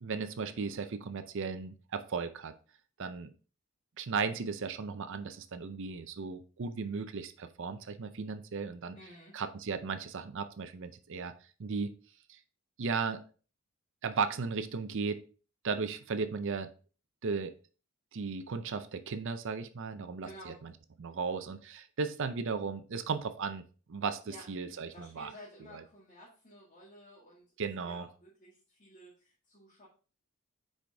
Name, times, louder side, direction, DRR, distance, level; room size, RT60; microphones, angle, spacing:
voice 1, 0.0-2.5 3.0-3.3 4.0-9.0 9.3-11.3 11.6-11.9 12.8-13.2 14.0-15.2 15.6-16.7 17.2-17.5 18.1-20.7 21.0-23.6 23.9-25.3 27.6-28.1, right 5 dB, 60° right, 10 dB, 0.5 m, -36 dB
voice 2, 8.9-9.4 20.2-20.6 24.2-24.5 24.9-27.4 27.8-29.9, equal, 35° left, -7 dB, 1.9 m, -53 dB
6.4 x 4.8 x 3.4 m, 0.38 s
head